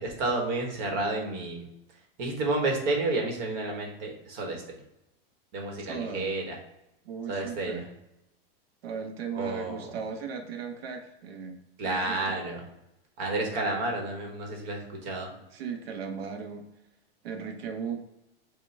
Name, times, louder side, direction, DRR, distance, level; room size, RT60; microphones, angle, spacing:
voice 1, 0.0-1.6 2.2-4.8 5.5-6.5 7.3-7.8 9.3-9.9 11.8-12.6 13.2-15.3, right 2 dB, 50° right, 1 dB, 1.2 m, -30 dB
voice 2, 5.8-6.3 7.0-7.9 8.8-12.4 15.5-16.6 17.2-18.0, right 6 dB, 85° right, 4 dB, 0.7 m, -37 dB
5.2 x 2.3 x 3.2 m, 0.87 s
supercardioid pair, 145°, 29 cm